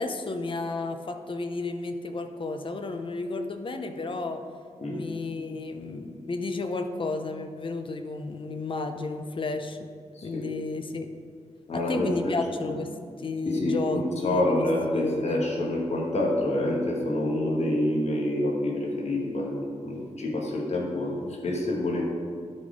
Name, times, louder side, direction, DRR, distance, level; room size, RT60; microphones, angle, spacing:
voice 1, 0.0-4.4 4.9-9.9 10.2-11.1 11.7-12.9 13.2-14.7 14.9-15.4, left 3 dB, 45° left, 7 dB, 0.6 m, -32 dB
voice 2, 10.1-10.5 11.7-12.3 12.6-12.7 13.4-22.0, left 1 dB, 60° left, -2 dB, 1.4 m, -27 dB
12.0 x 4.4 x 4.9 m, 2.1 s
wide cardioid pair, 135°, 12 cm